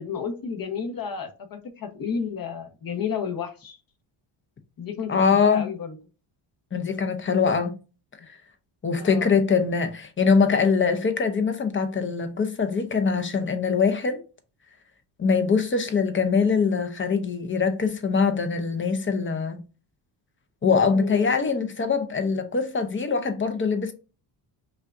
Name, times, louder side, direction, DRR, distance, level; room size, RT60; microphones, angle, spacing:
voice 1, 0.0-3.8 4.8-6.0 9.0-9.3 20.9-21.3, left 6 dB, 45° left, 1.1 m, -32 dB
voice 2, 5.1-5.7 6.7-7.8 8.8-14.2 15.2-19.6 20.6-23.9, left 5 dB, 25° left, 0.7 m, -23 dB
5.5 x 2.4 x 2.6 m
cardioid pair, 110°, 49 cm